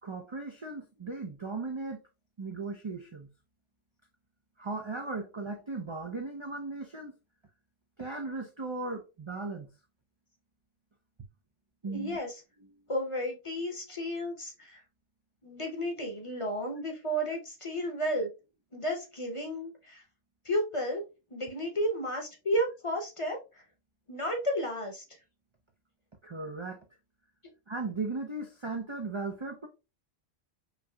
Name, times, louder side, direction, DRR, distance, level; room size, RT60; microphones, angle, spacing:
voice 1, 0.0-2.0 2.4-3.3 4.6-7.2 8.0-9.7 11.8-12.2 26.2-26.8 27.7-29.7, right 3 dB, 40° right, 0.4 m, -37 dB
voice 2, 11.9-12.4 12.9-14.8 15.4-18.3 18.7-20.0 20.4-21.0 21.3-23.6 24.1-25.2, equal, 30° left, 0.8 m, -32 dB
5.2 x 2.8 x 2.2 m
omnidirectional pair, 1.1 m